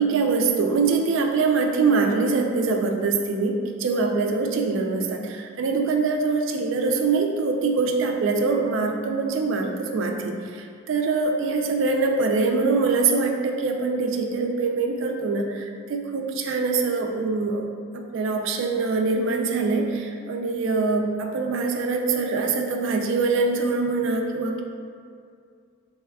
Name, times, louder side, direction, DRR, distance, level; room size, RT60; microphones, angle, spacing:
voice 1, 0.0-17.6 17.9-24.6, right 4 dB, 70° right, 2 dB, 0.4 m, -24 dB
3.4 x 3.3 x 2.2 m, 2.2 s
head